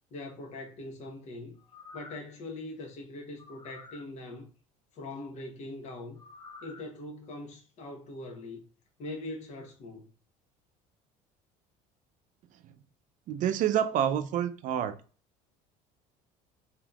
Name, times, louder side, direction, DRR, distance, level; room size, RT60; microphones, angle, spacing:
voice 1, 0.1-1.6 1.9-4.5 4.9-6.2 6.6-8.6 9.0-10.1, left 2 dB, 50° left, 1.0 m, -42 dB
sound 1, 1.6-2.4 3.4-4.1 6.2-6.8 7.3-7.4, left 3 dB, 25° left, 0.5 m, -49 dB
voice 2, 13.3-15.0, right 9 dB, 55° right, 0.5 m, -28 dB
3.4 x 2.8 x 2.3 m
supercardioid pair, 105°, 15 cm